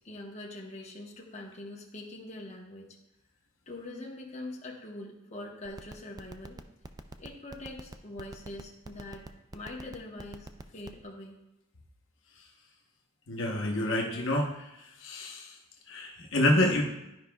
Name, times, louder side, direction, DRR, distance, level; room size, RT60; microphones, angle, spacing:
voice 1, 0.0-2.9 3.7-6.6 7.2-9.3 9.5-10.5 10.7-11.4, left 2 dB, 35° left, -2 dB, 1.0 m, -43 dB
sound 1, 5.7-11.0, right 2 dB, 20° right, 0.3 m, -43 dB
voice 2, 13.3-14.7 15.0-15.5 15.9-16.8, left 1 dB, 65° left, 0 dB, 1.0 m, -27 dB
12.0 x 5.0 x 2.3 m, 0.90 s
head